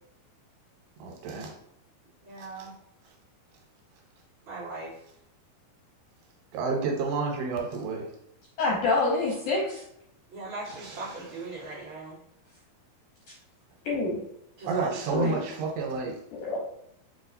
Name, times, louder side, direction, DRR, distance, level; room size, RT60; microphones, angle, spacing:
voice 1, 1.0-1.5 2.4-2.5 6.5-8.0 10.7-11.2 11.5-11.6 14.7-16.2, right 4 dB, 90° right, 1 dB, 3.0 m, -30 dB
voice 2, 2.2-2.7 4.5-4.9 10.3-12.2 14.6-15.4, right 3 dB, 40° right, -9 dB, 1.8 m, -39 dB
voice 3, 8.6-9.8 13.9-14.2 15.1-15.4 16.3-16.6, left 3 dB, 75° left, -4 dB, 1.9 m, -26 dB
7.0 x 2.7 x 2.6 m, 0.76 s
omnidirectional pair, 4.5 m